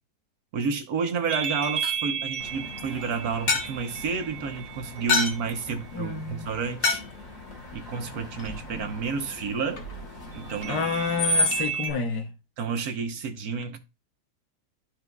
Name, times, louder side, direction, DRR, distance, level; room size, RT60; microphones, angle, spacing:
voice 1, 0.5-7.0 7.7-9.8 10.3-10.8 12.6-13.8, right 5 dB, 65° right, 1.4 m, -30 dB
sound 1, 1.3-10.7, left 4 dB, 45° left, 1.7 m, -33 dB
sound 2, 1.3-5.9 10.5-11.9, right 7 dB, 40° right, 1.0 m, -34 dB
Screech, 2.4-11.7, left 1 dB, 25° left, 2.7 m, -35 dB
voice 2, 5.9-6.5 8.7-8.9 10.7-12.3, left 5 dB, 75° left, 1.5 m, -29 dB
12.5 x 4.4 x 2.3 m
omnidirectional pair, 1.8 m